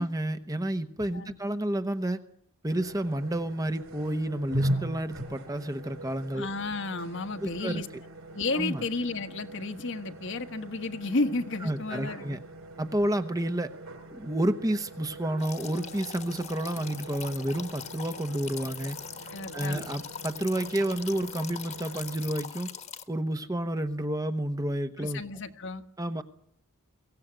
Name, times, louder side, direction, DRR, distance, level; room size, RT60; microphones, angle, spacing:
voice 1, 0.0-2.2 2.6-6.5 7.4-7.8 8.5-8.8 11.6-12.4 12.8-13.7 14.1-19.0 19.5-22.7 23.1-25.2 26.0-26.2, right 1 dB, 15° right, 1.0 m, -30 dB
sound 1, 2.7-22.3, right 1 dB, 70° right, 5.3 m, -41 dB
voice 2, 6.3-7.9 8.3-12.4 19.3-19.9 25.0-25.8, left 3 dB, 55° left, 1.4 m, -32 dB
sound 2, 15.4-23.0, left 7 dB, 30° left, 1.5 m, -42 dB
23.0 x 16.0 x 9.1 m
head